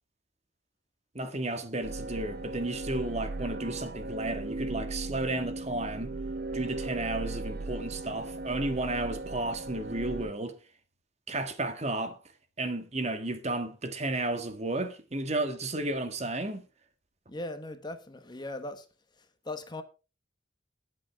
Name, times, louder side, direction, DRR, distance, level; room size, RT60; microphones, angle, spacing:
voice 1, 1.1-6.1 6.5-10.5 11.3-12.2 12.6-16.6, right 2 dB, 35° right, 1.6 m, -33 dB
sound 1, 1.8-10.3, right 2 dB, 55° right, 0.6 m, -37 dB
voice 2, 17.3-18.9 19.4-19.8, left 2 dB, 25° left, 1.2 m, -38 dB
21.5 x 7.7 x 3.5 m
head